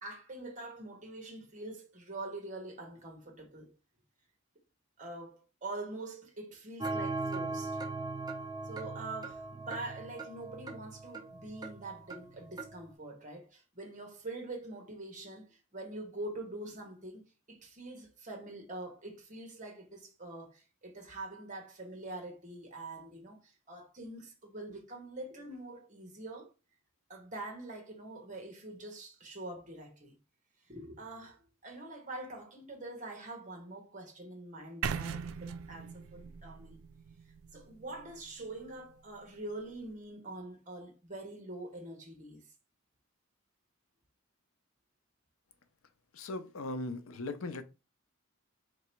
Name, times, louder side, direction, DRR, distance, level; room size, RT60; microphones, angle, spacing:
voice 1, 0.0-3.7 5.0-7.8 8.6-26.5 27.1-30.2 30.7-36.8 37.5-42.4, right 2 dB, 40° right, 1.2 m, -44 dB
sound 1, 6.8-12.8, right 3 dB, 20° right, 0.7 m, -39 dB
sound 2, 34.8-38.8, right 7 dB, 85° right, 0.4 m, -40 dB
voice 2, 46.1-47.6, left 2 dB, 85° left, 0.6 m, -38 dB
3.3 x 2.9 x 4.4 m
head